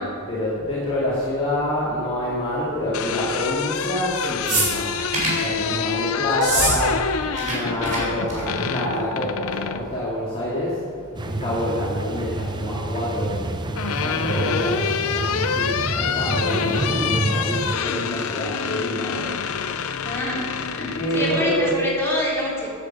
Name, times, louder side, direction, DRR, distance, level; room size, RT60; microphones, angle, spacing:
voice 1, 0.0-5.0 5.4-7.1 7.4-10.9 11.2-13.4 14.0-19.4 20.8-21.9, left 1 dB, 25° left, -9 dB, 2.4 m, -27 dB
sound 1, 2.7-9.9 11.4-12.0 13.3-21.8, left 6 dB, 65° left, 0.6 m, -27 dB
sound 2, 4.4-5.5 6.3-6.8 7.0-7.5 7.8-8.0 8.3-8.6 9.5-9.6, right 3 dB, 35° right, 3.7 m, -24 dB
sound 3, 11.1-17.7, right 2 dB, 20° right, 0.5 m, -28 dB
voice 2, 20.0-20.5 20.7-22.7, left 1 dB, 10° left, -7 dB, 3.7 m, -25 dB
10.0 x 8.3 x 7.1 m, 2.2 s
head